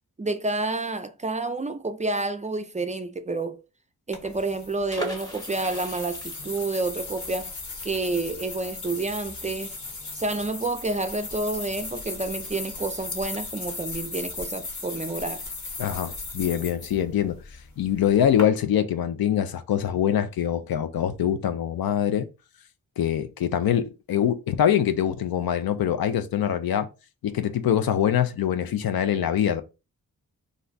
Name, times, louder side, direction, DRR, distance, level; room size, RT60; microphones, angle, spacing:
voice 1, 0.2-3.6 4.1-7.5 7.8-9.8 10.1-15.4, right 2 dB, 20° right, 0.4 m, -29 dB
sound 1, 4.1-18.4, left 3 dB, 55° left, 1.0 m, -37 dB
sound 2, 4.9-10.5 10.8-10.9 11.2-11.5, right 1 dB, 10° left, 1.0 m, -40 dB
voice 2, 15.8-17.4 17.8-22.3 23.0-26.9 27.2-29.6, left 9 dB, 85° left, 0.5 m, -24 dB
2.6 x 2.1 x 3.9 m
cardioid pair, 55°, 35 cm